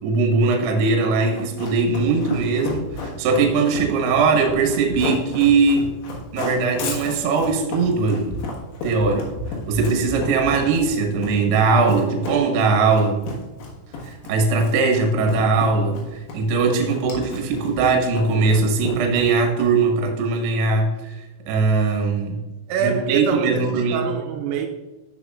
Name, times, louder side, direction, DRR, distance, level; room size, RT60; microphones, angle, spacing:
voice 1, 0.0-5.9 6.3-8.4 8.8-9.3 9.7-13.2 14.0-21.2 21.5-22.4 22.8-24.1, right 4 dB, 70° right, 2.7 m, -20 dB
Run, 1.2-19.9, left 3 dB, 65° left, 3.4 m, -33 dB
voice 2, 22.7-24.7, right 6 dB, 85° right, 3.2 m, -25 dB
12.5 x 5.7 x 2.4 m
omnidirectional pair, 5.9 m